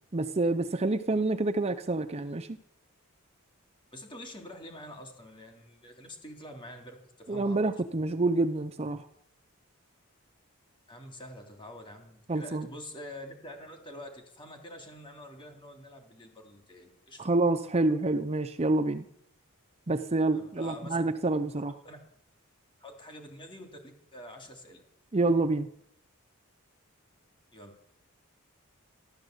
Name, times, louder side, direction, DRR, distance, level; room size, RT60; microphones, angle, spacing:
voice 1, 0.1-2.5 7.3-9.0 12.3-12.7 17.2-19.1 19.9-21.7 25.1-25.7, right 2 dB, 30° right, 8 dB, 0.6 m, -27 dB
voice 2, 3.9-7.6 10.9-17.3 20.3-21.0 21.8-22.0 22.8-24.8 27.5-27.8, left 1 dB, 25° left, 3 dB, 3.1 m, -46 dB
13.5 x 12.5 x 8.0 m, 0.73 s
head